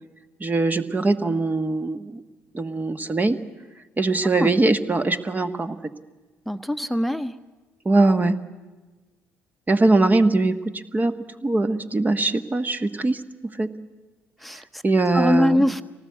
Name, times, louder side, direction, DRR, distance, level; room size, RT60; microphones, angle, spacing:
voice 1, 0.4-2.2 2.5-3.4 4.0-5.8 7.8-8.4 9.7-11.1 11.4-13.2 13.6-13.7 14.8-15.6, right 2 dB, 25° right, 9 dB, 1.4 m, -21 dB
voice 2, 6.5-7.3 14.4-14.8 15.1-15.8, left 1 dB, ahead, 9 dB, 1.1 m, -22 dB
24.5 x 18.5 x 8.4 m, 1.2 s
hypercardioid pair, 50°, 7 cm